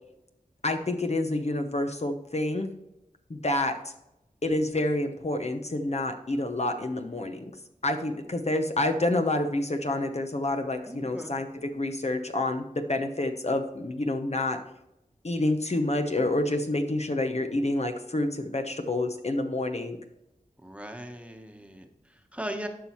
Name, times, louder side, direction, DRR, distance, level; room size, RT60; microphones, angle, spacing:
voice 1, 0.6-2.7 3.3-3.8 4.4-7.4 7.8-14.6 15.2-20.0, left 2 dB, 50° left, 6 dB, 0.9 m, -28 dB
voice 2, 10.8-11.3 20.6-22.7, equal, 10° right, 4 dB, 1.2 m, -39 dB
11.5 x 5.5 x 3.1 m, 0.87 s
wide cardioid pair, 45°, 14 cm